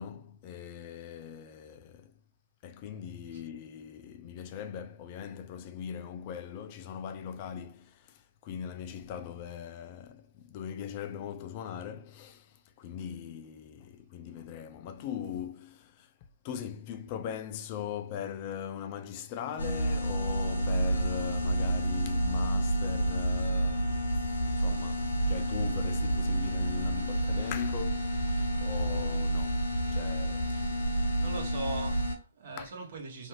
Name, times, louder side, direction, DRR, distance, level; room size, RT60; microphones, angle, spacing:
voice 1, 0.0-2.1 2.6-16.1 16.4-29.6 29.9-30.6 32.6-32.7, left 8 dB, 35° left, 0.3 m, -40 dB
sound 1, 19.6-32.2, right 1 dB, 85° left, 0.7 m, -29 dB
voice 2, 31.2-33.3, right 3 dB, 55° right, 1.0 m, -39 dB
2.6 x 2.4 x 3.1 m
hypercardioid pair, 130°, 0 cm